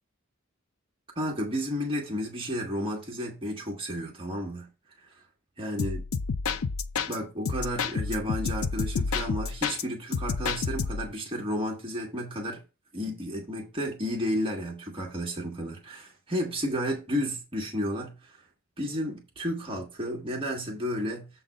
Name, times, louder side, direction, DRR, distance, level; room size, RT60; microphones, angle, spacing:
voice 1, 1.1-4.7 5.6-6.0 7.1-12.6 12.9-18.4 18.8-21.3, equal, 25° right, 1.6 m, -32 dB
sound 1, 5.8-7.2 7.5-9.8 10.1-11.1, left 5 dB, 80° left, 0.6 m, -30 dB
7.4 x 3.9 x 5.0 m
head